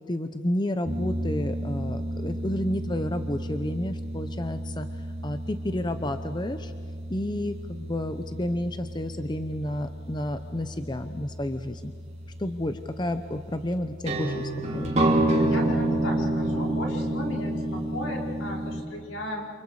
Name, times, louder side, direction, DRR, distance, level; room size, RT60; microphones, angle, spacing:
voice 1, 0.0-6.7 7.1-11.9 12.4-14.9, left 1 dB, 20° left, 9 dB, 0.8 m, -31 dB
sound 1, 0.8-18.8, right 1 dB, 35° right, 3.0 m, -30 dB
voice 2, 15.4-19.4, left 1 dB, 80° left, -2 dB, 5.2 m, -35 dB
28.5 x 28.0 x 4.9 m, 2.2 s
head